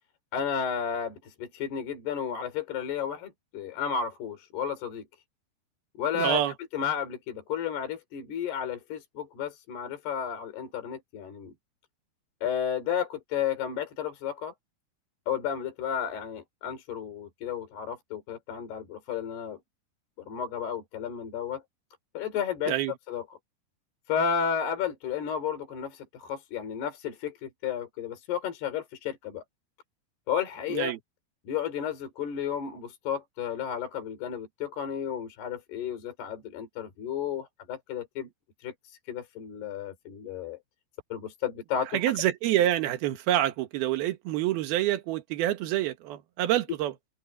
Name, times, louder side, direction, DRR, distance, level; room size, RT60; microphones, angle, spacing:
voice 1, 0.3-5.0 6.0-6.4 6.7-11.5 12.4-14.5 15.3-19.6 20.3-21.6 22.1-22.8 23.1-23.3 24.1-29.4 30.3-31.0 31.5-38.3 38.6-40.6 41.1-42.0, left 8 dB, 65° left, 5.8 m, -32 dB
voice 2, 6.1-6.5 22.7-22.9 30.7-31.0 41.9-46.9, right 13 dB, 65° right, 3.1 m, -27 dB
omnidirectional pair, 5.0 m